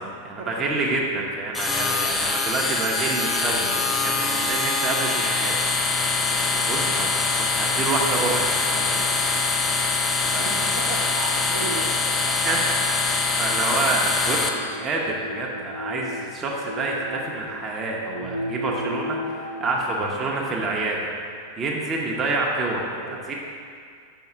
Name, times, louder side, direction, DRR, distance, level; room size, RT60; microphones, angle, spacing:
voice 1, 0.0-5.5 6.3-7.1 7.4-9.2 9.8-10.5 12.4-12.6 13.4-21.0 21.6-23.0 23.3-23.4, right 3 dB, 25° right, -2 dB, 0.7 m, -28 dB
sound 1, 1.5-14.5, left 4 dB, 15° left, 0.5 m, -24 dB
voice 2, 10.4-12.8 13.6-14.0 22.9-23.3, right 3 dB, 65° right, -2 dB, 0.9 m, -36 dB
sound 2, 14.5-19.8, left 1 dB, 85° left, 0.6 m, -34 dB
5.4 x 4.6 x 4.6 m, 2.2 s
figure-of-eight pair, 90°, 0 cm